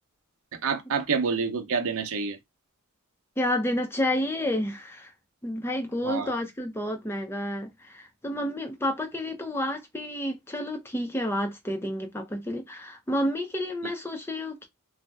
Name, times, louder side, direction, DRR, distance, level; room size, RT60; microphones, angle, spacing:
voice 1, 0.5-2.4 6.0-6.3, right 5 dB, 65° right, 0.7 m, -28 dB
voice 2, 3.4-5.1 5.4-14.7, left 1 dB, 10° left, 0.5 m, -30 dB
2.7 x 2.1 x 3.3 m
head